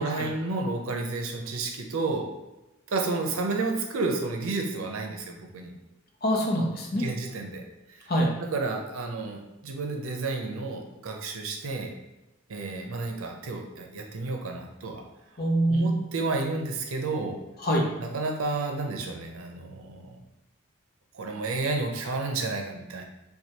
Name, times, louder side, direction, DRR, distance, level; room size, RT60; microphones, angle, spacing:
voice 1, 0.0-2.3 2.9-5.7 6.9-7.6 7.9-8.0 8.4-11.9 12.5-15.1 15.7-17.4 18.0-20.2 21.1-23.0, right 3 dB, 90° right, 2 dB, 0.6 m, -31 dB
voice 2, 6.2-7.0 8.1-8.3 15.4-15.9 17.6-17.9, right 1 dB, 50° left, 0 dB, 0.7 m, -24 dB
4.6 x 2.3 x 2.8 m, 1.0 s
head